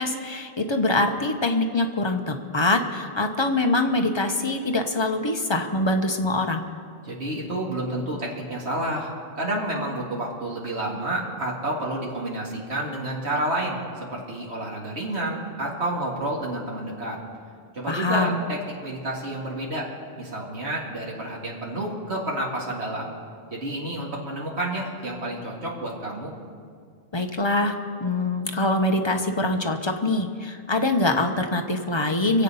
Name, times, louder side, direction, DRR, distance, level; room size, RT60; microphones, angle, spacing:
voice 1, 0.0-6.6 17.9-18.4 27.1-32.4, left 2 dB, 25° left, 4 dB, 0.9 m, -24 dB
voice 2, 7.0-13.8 14.1-17.2 17.7-19.9 20.2-23.1 23.5-26.3, right 1 dB, 85° right, -3 dB, 2.3 m, -30 dB
24.0 x 8.0 x 5.6 m, 2.1 s
omnidirectional pair, 1.1 m